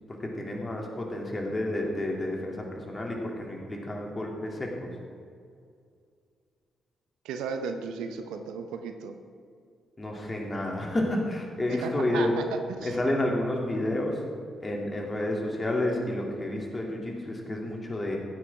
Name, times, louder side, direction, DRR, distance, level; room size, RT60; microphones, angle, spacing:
voice 1, 0.1-4.9 10.0-12.3 12.8-14.2 14.6-18.2, left 1 dB, 30° left, 0 dB, 2.9 m, -30 dB
voice 2, 7.2-9.1 11.7-12.9, right 5 dB, 70° right, 7 dB, 0.8 m, -35 dB
15.5 x 9.8 x 3.7 m, 2.3 s
hypercardioid pair, 40°, 0 cm